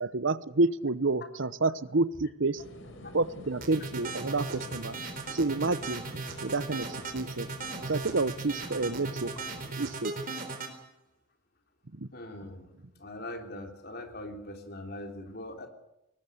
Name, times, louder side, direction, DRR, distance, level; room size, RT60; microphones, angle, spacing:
voice 1, 0.0-2.6 3.1-5.0 5.3-7.5 7.9-9.3 9.8-10.2 11.9-12.1, right 3 dB, 65° right, 16 dB, 1.0 m, -29 dB
sound 1, 2.6-9.7, left 1 dB, 75° left, 4.4 m, -48 dB
sound 2, 3.6-10.7, right 3 dB, 45° right, 4.0 m, -37 dB
voice 2, 12.1-12.7 13.0-15.7, left 1 dB, 50° left, 4 dB, 3.5 m, -41 dB
21.0 x 20.0 x 8.0 m, 0.87 s
head